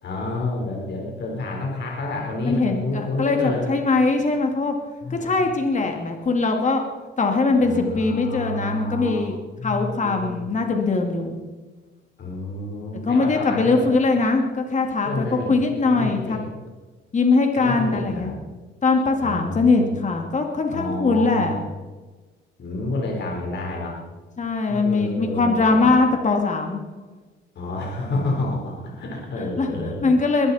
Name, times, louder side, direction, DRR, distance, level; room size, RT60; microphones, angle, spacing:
voice 1, 0.0-3.7 5.0-5.4 7.6-10.4 12.2-13.9 15.0-15.5 15.8-16.4 17.6-18.4 19.2-19.9 20.7-21.7 22.6-24.0 24.7-26.0 27.6-30.1, left 2 dB, 60° left, -2 dB, 4.1 m, -29 dB
voice 2, 2.4-4.8 5.1-6.8 7.2-9.3 9.6-11.4 13.0-16.4 17.1-18.3 18.8-21.6 24.4-26.8 29.4-29.7 30.0-30.5, left 3 dB, 40° left, 3 dB, 2.3 m, -21 dB
22.0 x 12.0 x 4.3 m, 1.3 s
cardioid pair, 90°, 20 cm